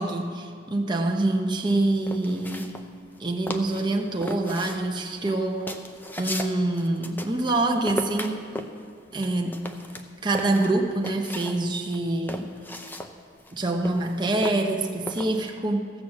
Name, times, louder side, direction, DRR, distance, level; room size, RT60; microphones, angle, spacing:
voice 1, 0.0-2.7 3.2-5.7 6.2-8.4 9.1-9.6 10.2-12.5 13.5-15.9, right 2 dB, 25° right, 2 dB, 0.9 m, -25 dB
sound 1, 1.7-3.2 3.5-3.9 4.2-7.6 7.9-11.6 11.9-15.5, left 1 dB, 10° left, 0.6 m, -36 dB
15.5 x 6.4 x 7.3 m, 2.2 s
head